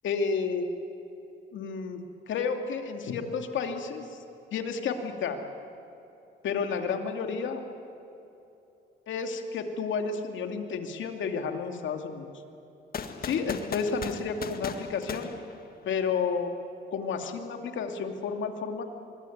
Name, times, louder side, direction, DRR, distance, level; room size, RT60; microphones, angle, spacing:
voice 1, 0.0-0.7 1.5-4.2 4.5-5.4 6.4-7.6 9.1-12.3 13.2-15.3 15.8-16.5 16.9-18.8, left 5 dB, 75° left, 5 dB, 2.6 m, -31 dB
sound 1, 12.9-16.1, left 6 dB, 50° left, 1.8 m, -38 dB
24.5 x 21.5 x 9.4 m, 2.9 s
cardioid pair, 90°, 20 cm